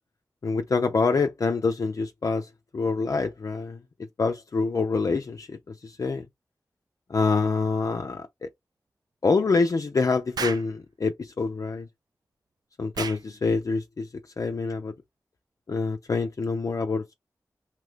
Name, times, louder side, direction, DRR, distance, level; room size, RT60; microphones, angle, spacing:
voice 1, 0.4-2.5 2.7-3.8 4.2-5.6 5.8-6.3 7.1-8.5 9.2-11.9 12.8-14.1 14.4-14.9 15.7-17.1, left 4 dB, 55° left, 0.5 m, -26 dB
Explosion, 10.4-10.7 12.9-13.2, right 6 dB, 80° right, 0.4 m, -32 dB
2.8 x 2.3 x 3.2 m
cardioid pair, 45°, 7 cm